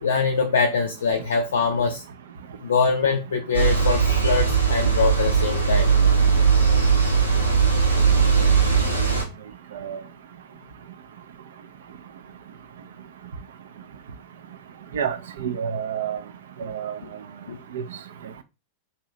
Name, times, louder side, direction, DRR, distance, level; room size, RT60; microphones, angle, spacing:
voice 1, 0.0-2.0 2.6-5.9 17.5-17.6, left 5 dB, 65° left, 0.4 m, -23 dB
sound 1, 3.5-9.2, right 6 dB, 85° right, 0.8 m, -19 dB
voice 2, 14.9-16.2 16.6-16.9 17.7-17.8, right 8 dB, 60° right, 0.4 m, -28 dB
2.8 x 2.6 x 3.1 m
figure-of-eight pair, 90°, 0 cm